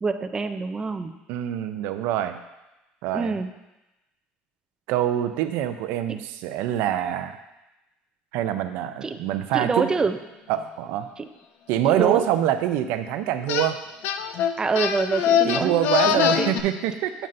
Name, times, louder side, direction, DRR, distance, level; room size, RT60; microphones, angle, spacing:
voice 1, 0.0-1.1 3.1-3.5 6.1-6.2 9.0-9.2 9.5-10.2 11.2-11.3 11.9-12.3 14.6-15.7 16.1-16.5, right 4 dB, 20° right, 8 dB, 0.4 m, -26 dB
voice 2, 1.3-2.4 3.0-3.4 4.9-7.4 8.3-9.9 10.5-11.1 11.7-13.8 15.4-17.1, right 11 dB, 80° right, 9 dB, 0.5 m, -25 dB
sound 1, 13.5-13.7 14.0-16.6, left 9 dB, 70° left, 0.4 m, -23 dB
8.9 x 5.4 x 2.6 m, 0.98 s
cardioid pair, 120°, 4 cm